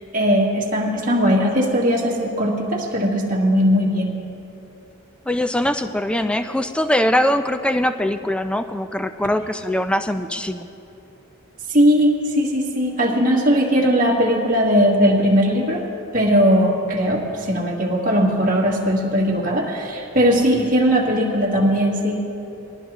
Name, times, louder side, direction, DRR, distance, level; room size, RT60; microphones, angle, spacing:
voice 1, 0.1-4.2 11.7-15.8 16.1-22.2, equal, 40° right, -3 dB, 1.7 m, -19 dB
voice 2, 5.3-10.7, left 1 dB, 5° left, 9 dB, 0.3 m, -22 dB
20.0 x 13.0 x 3.0 m, 3.0 s
head